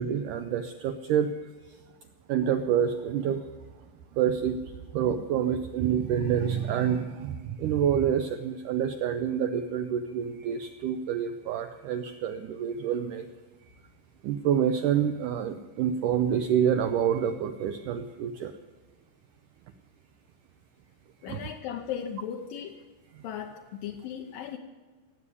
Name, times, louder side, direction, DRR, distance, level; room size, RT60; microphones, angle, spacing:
voice 1, 0.0-1.5 2.3-3.4 4.1-4.6 4.9-13.3 14.2-18.5 21.2-21.4 23.2-23.3, right 8 dB, 90° right, 9 dB, 1.8 m, -27 dB
voice 2, 21.2-22.8 23.2-24.6, left 9 dB, 75° left, 2 dB, 2.3 m, -36 dB
17.5 x 8.2 x 9.8 m, 1.4 s
omnidirectional pair, 4.5 m